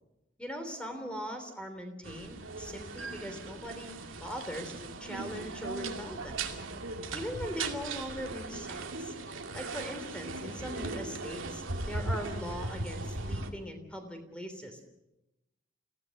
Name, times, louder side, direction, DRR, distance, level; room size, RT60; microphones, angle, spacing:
voice 1, 0.4-6.5 7.1-9.1 9.5-14.8, equal, 5° left, 5 dB, 3.3 m, -40 dB
sound 1, 2.0-13.5, right 3 dB, 80° right, 2.4 m, -38 dB
27.5 x 16.5 x 6.5 m, 0.90 s
head